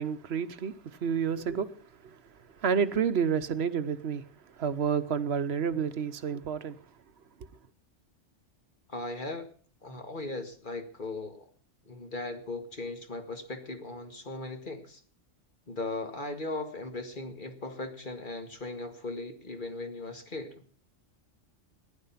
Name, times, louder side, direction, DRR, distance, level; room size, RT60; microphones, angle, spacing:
voice 1, 0.0-1.7 2.0-2.2 2.6-4.2 4.6-6.8, right 7 dB, 60° right, 1.1 m, -29 dB
voice 2, 8.9-9.5 9.8-11.4 11.9-15.0 15.7-20.6, left 2 dB, 40° left, 2.1 m, -38 dB
15.5 x 11.0 x 5.7 m
omnidirectional pair, 1.3 m